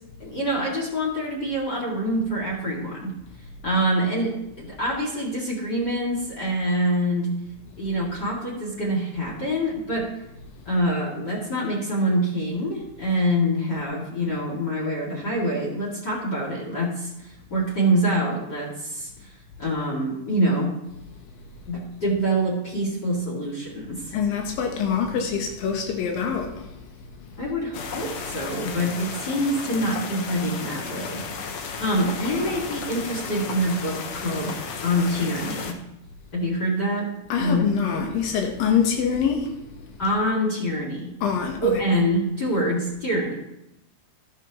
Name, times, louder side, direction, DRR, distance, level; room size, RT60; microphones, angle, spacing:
voice 1, 0.2-3.1 3.6-7.3 7.8-10.2 10.7-19.3 19.6-20.7 21.7-24.2 27.4-31.2 31.5-35.8 36.3-37.1 37.4-37.7 38.0-38.1 40.0-41.1 41.6-43.4, equal, 35° left, 2.3 m, -25 dB
voice 2, 24.1-26.9 32.2-32.4 37.3-40.0 41.2-41.8, left 7 dB, 85° left, 2.8 m, -25 dB
sound 1, 27.7-35.7, left 5 dB, 65° left, 2.0 m, -34 dB
13.0 x 11.5 x 2.9 m
omnidirectional pair, 3.9 m